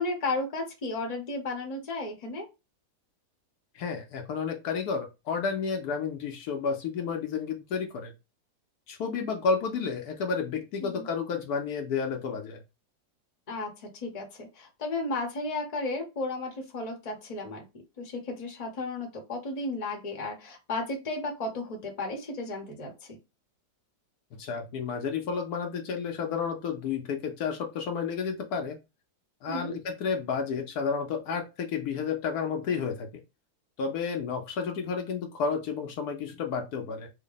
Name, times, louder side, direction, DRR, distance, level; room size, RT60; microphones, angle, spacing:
voice 1, 0.0-2.5 10.8-11.1 13.5-17.6 18.0-23.2 29.5-29.8, left 2 dB, 30° left, 1 dB, 0.8 m, -34 dB
voice 2, 3.7-8.1 8.9-12.6 24.4-28.8 29.4-33.2 33.8-37.1, left 5 dB, 70° left, 4 dB, 1.1 m, -31 dB
3.4 x 2.1 x 3.8 m, 0.26 s
omnidirectional pair, 1.8 m